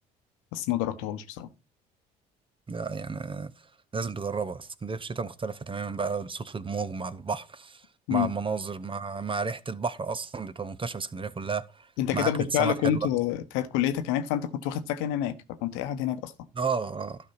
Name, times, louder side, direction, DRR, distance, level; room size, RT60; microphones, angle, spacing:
voice 1, 0.5-1.5 8.1-8.3 12.0-15.4 15.6-16.3, left 11 dB, 75° left, 1.0 m, -28 dB
voice 2, 2.7-3.5 3.9-11.9 12.1-12.3 12.6-12.7 16.6-17.2, right 5 dB, 25° right, 0.8 m, -32 dB
12.0 x 5.3 x 4.3 m
hypercardioid pair, 60°, 21 cm